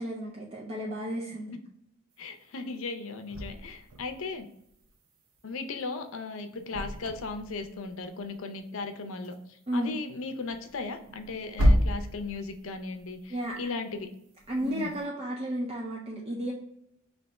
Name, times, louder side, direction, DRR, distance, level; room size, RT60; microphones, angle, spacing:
voice 1, 0.0-1.5 9.7-9.9 13.3-13.7 14.5-16.5, right 1 dB, 30° right, -3 dB, 0.5 m, -33 dB
voice 2, 2.2-4.5 5.4-9.3 9.7-14.1 14.6-14.9, left 3 dB, 70° left, 7 dB, 0.5 m, -37 dB
sound 1, 2.2-2.3 3.3-5.9 6.3-8.9 9.2-9.4 9.6-14.0 14.4-15.1, equal, 75° right, 0.6 m, -32 dB
3.3 x 2.9 x 4.1 m, 0.76 s
head